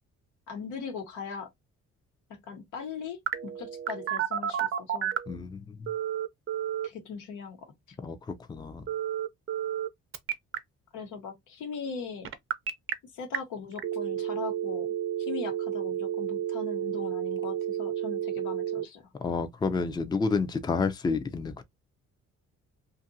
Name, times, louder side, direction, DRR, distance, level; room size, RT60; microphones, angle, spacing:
voice 1, 0.5-1.5 2.4-5.1 6.8-7.6 7.9-8.0 10.9-12.3 13.0-14.9 15.2-19.1, left 6 dB, 85° left, 1.0 m, -39 dB
Telephone, 3.3-5.3 5.9-6.9 8.9-9.9 10.1-10.6 12.2-12.9 13.3-13.4 13.8-18.8, right 10 dB, 45° right, 0.6 m, -31 dB
voice 2, 5.3-5.9 8.0-8.8 19.2-21.6, left 4 dB, 15° left, 0.4 m, -30 dB
2.6 x 2.5 x 2.6 m
cardioid pair, 90°, 30 cm